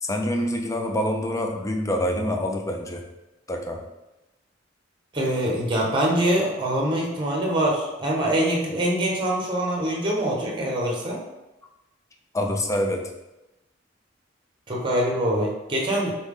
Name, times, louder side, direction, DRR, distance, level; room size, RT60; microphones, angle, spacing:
voice 1, 0.0-3.0 3.5-3.8 12.3-13.1, left 1 dB, 15° left, 3 dB, 0.5 m, -26 dB
voice 2, 5.1-11.2 14.7-16.1, right 1 dB, 25° right, -1 dB, 0.9 m, -24 dB
4.1 x 3.4 x 3.6 m, 0.98 s
head